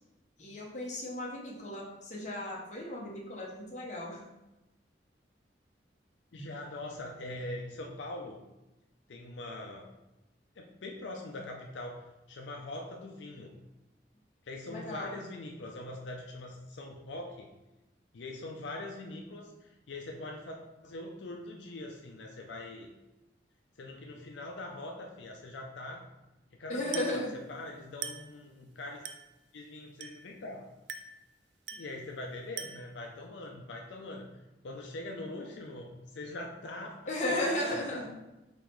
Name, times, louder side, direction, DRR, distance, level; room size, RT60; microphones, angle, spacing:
voice 1, 0.4-4.2 6.3-6.5 14.7-15.1 26.7-27.3 37.1-38.1, left 1 dB, 45° left, -2 dB, 1.0 m, -35 dB
voice 2, 6.3-8.4 9.1-9.9 10.6-13.5 14.5-17.5 18.1-22.9 23.8-26.1 26.6-27.2 27.5-29.0 29.5-30.7 31.8-34.3 34.6-38.0, left 2 dB, 85° left, 1 dB, 0.5 m, -42 dB
Glass, 26.9-27.3 28.0-28.4 29.0-29.4 30.0-30.3 30.9-31.2 31.7-32.0 32.6-33.0, right 7 dB, 70° right, 0.4 m, -42 dB
3.9 x 3.0 x 4.6 m, 0.98 s
head